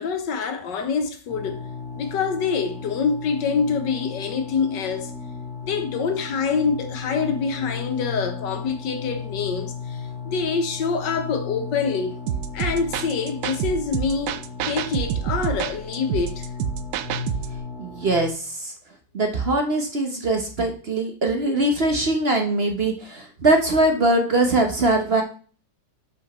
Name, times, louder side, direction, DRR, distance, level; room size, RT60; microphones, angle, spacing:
voice 1, 0.0-1.7 1.9-5.1 5.6-12.2 12.5-14.4 14.7-16.5, left 5 dB, 85° left, 1.7 m, -25 dB
sound 1, 1.3-18.3, left 5 dB, 20° left, 1.3 m, -35 dB
sound 2, 12.3-17.6, right 10 dB, 80° right, 1.2 m, -28 dB
voice 2, 17.8-18.7 19.1-25.2, right 2 dB, 40° right, 1.0 m, -22 dB
5.3 x 5.1 x 5.4 m
omnidirectional pair, 1.9 m